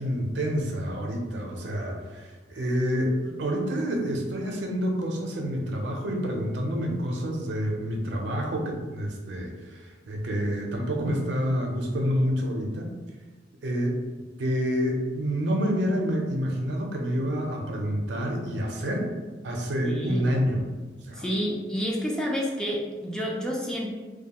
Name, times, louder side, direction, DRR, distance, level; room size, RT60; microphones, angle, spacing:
voice 1, 0.0-12.9 13.6-14.0 14.4-19.1 19.4-20.6 21.1-21.3, equal, 80° right, 1 dB, 0.5 m, -28 dB
voice 2, 19.8-20.3 21.2-23.9, equal, 5° left, -2 dB, 0.3 m, -29 dB
2.4 x 2.2 x 2.8 m, 1.3 s
head